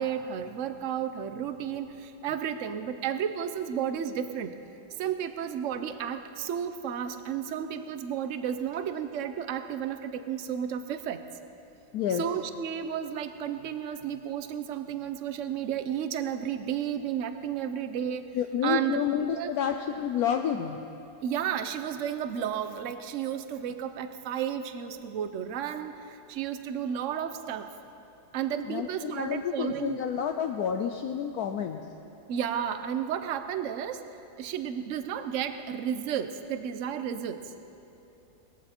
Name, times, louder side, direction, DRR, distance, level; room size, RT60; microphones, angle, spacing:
voice 1, 0.0-4.6 5.0-11.2 12.2-18.3 18.6-19.0 19.4-19.5 21.2-27.7 28.3-30.0 32.3-34.0 34.4-37.5, right 9 dB, 60° right, 10 dB, 0.9 m, -32 dB
voice 2, 11.9-12.3 18.3-20.8 28.7-31.8, left 8 dB, 70° left, 5 dB, 1.0 m, -29 dB
20.0 x 14.5 x 4.4 m, 3.0 s
omnidirectional pair, 1.9 m